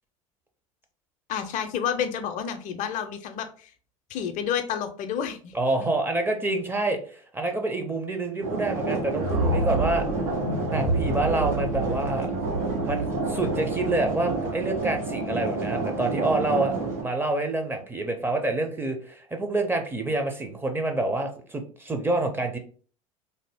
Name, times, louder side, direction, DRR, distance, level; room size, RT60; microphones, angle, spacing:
voice 1, 1.3-3.7 4.1-5.5 5.8-5.9, left 8 dB, 45° left, 8 dB, 0.5 m, -30 dB
voice 2, 5.5-10.0 10.7-12.3 12.8-16.7 17.0-22.6, right 2 dB, 10° right, 4 dB, 0.6 m, -27 dB
sound 1, 8.4-17.0, right 3 dB, 90° right, 1.3 m, -29 dB
sound 2, 9.1-15.2, right 2 dB, 55° right, 1.5 m, -30 dB
2.7 x 2.0 x 3.3 m, 0.42 s
hypercardioid pair, 80°, 17 cm